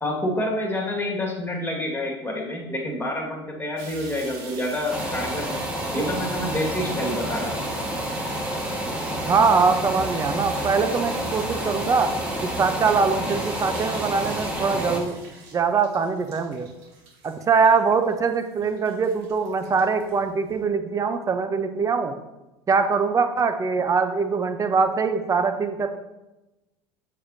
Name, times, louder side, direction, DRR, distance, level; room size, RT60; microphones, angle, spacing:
voice 1, 0.0-5.6 5.9-7.5, left 1 dB, 15° left, 0 dB, 1.9 m, -28 dB
sound 1, 3.8-20.6, right 4 dB, 60° right, 1.5 m, -42 dB
sound 2, 4.9-15.0, right 1 dB, 10° right, 1.4 m, -29 dB
voice 2, 9.3-12.1 12.4-15.2 15.5-16.7 17.2-22.1 22.7-26.0, right 5 dB, 25° right, 7 dB, 0.8 m, -22 dB
7.2 x 6.6 x 2.8 m, 1.0 s
hypercardioid pair, 75°, 13 cm